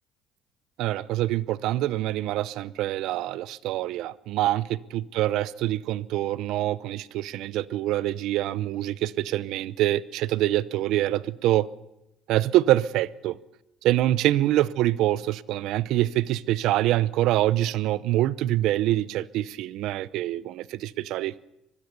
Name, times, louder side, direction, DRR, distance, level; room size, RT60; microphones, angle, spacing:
voice 1, 0.8-11.7 12.3-13.4 13.8-21.3, right 14 dB, 80° right, 0.8 m, -25 dB
24.5 x 20.5 x 6.9 m
supercardioid pair, 90°, 0 cm